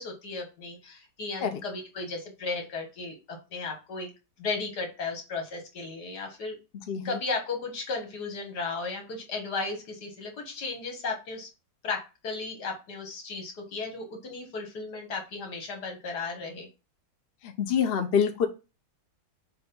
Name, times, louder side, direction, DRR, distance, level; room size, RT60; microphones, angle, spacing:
voice 1, 0.0-4.1 4.4-6.6 7.0-11.5 11.8-16.7, left 3 dB, 75° left, 3 dB, 2.1 m, -35 dB
voice 2, 6.9-7.2 17.4-18.5, left 7 dB, 45° left, 5 dB, 0.8 m, -26 dB
7.0 x 2.7 x 5.2 m, 0.29 s
omnidirectional pair, 1.8 m